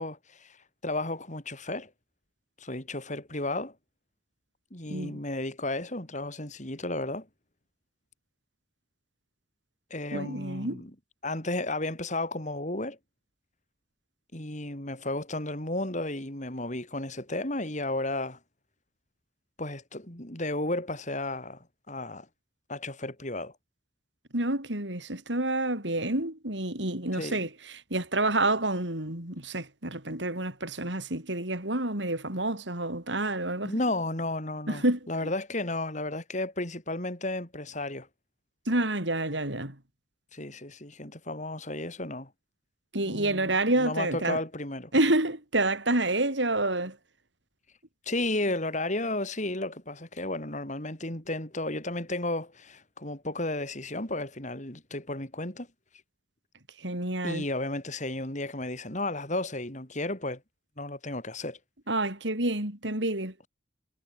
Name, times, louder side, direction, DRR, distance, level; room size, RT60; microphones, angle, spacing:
voice 1, 0.0-1.9 2.6-3.7 4.7-7.3 9.9-10.9 11.2-13.0 14.3-18.4 19.6-22.3 22.7-23.5 27.1-27.5 33.6-38.1 40.3-42.3 43.0-44.9 48.1-55.7 57.2-60.4 60.8-61.6, left 2 dB, 40° left, 6.1 m, -33 dB
voice 2, 4.9-5.2 10.1-10.8 24.3-33.7 34.7-35.0 38.7-39.8 42.9-44.4 44.9-47.0 56.8-57.4 61.9-63.3, right 2 dB, 80° right, 6.9 m, -28 dB
head